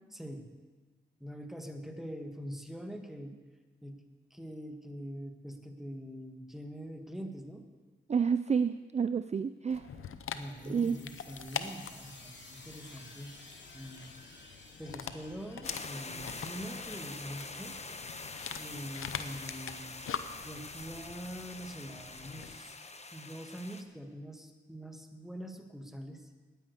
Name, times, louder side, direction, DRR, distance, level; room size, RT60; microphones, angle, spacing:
voice 1, 0.1-0.5 1.2-3.4 3.8-4.0 4.3-7.7 10.3-13.4 13.7-14.2 14.8-17.8 18.6-20.0 20.4-22.8 23.1-26.3, equal, ahead, 5 dB, 1.7 m, -44 dB
voice 2, 8.1-9.9 10.7-11.0, right 6 dB, 35° right, 13 dB, 0.4 m, -29 dB
Dog, 9.7-22.6, left 8 dB, 85° left, 0.7 m, -44 dB
sound 1, 10.3-21.7, left 2 dB, 60° left, 2.6 m, -56 dB
sound 2, 15.6-23.8, left 3 dB, 30° left, 1.0 m, -45 dB
9.9 x 9.3 x 8.0 m, 1.4 s
cardioid pair, 45°, 21 cm